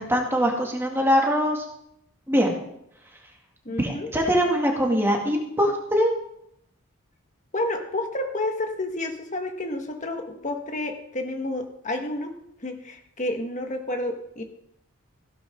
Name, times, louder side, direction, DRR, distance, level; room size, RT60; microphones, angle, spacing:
voice 1, 0.0-1.6 2.3-2.6 3.8-6.1, equal, 10° right, 0 dB, 2.4 m, -22 dB
voice 2, 3.6-4.1 7.5-12.3 12.6-14.4, left 1 dB, 35° left, 4 dB, 1.7 m, -30 dB
16.0 x 11.5 x 3.8 m, 0.75 s
head